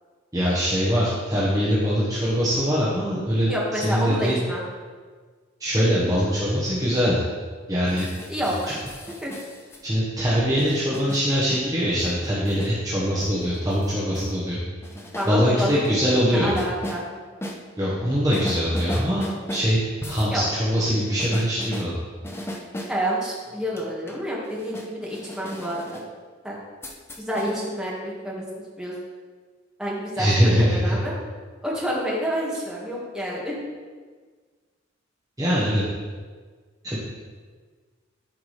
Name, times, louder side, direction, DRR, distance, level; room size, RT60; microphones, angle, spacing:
voice 1, 0.3-4.3 5.6-7.2 7.7-8.1 9.8-14.6 15.2-16.5 17.8-21.9 30.2-31.0 35.4-35.8 36.8-37.0, equal, 20° right, -7 dB, 1.2 m, -22 dB
voice 2, 3.5-4.6 8.3-8.8 9.2-9.3 15.1-15.8 16.3-17.0 20.3-20.4 22.9-26.0 26.4-26.6 27.3-28.4 28.8-28.9 29.8-31.1 31.6-33.6, equal, 5° right, -6 dB, 1.7 m, -28 dB
sound 1, 7.9-9.8 10.6-11.2 12.0-12.7 13.2-14.3 14.8-15.7 16.5-17.0 17.4-17.6 18.3-19.7 20.0-20.3 21.2-21.9 22.2-23.0 23.5-26.0 26.8-27.5, equal, 15° left, 0.6 m, -36 dB
12.5 x 4.7 x 3.3 m, 1.5 s
head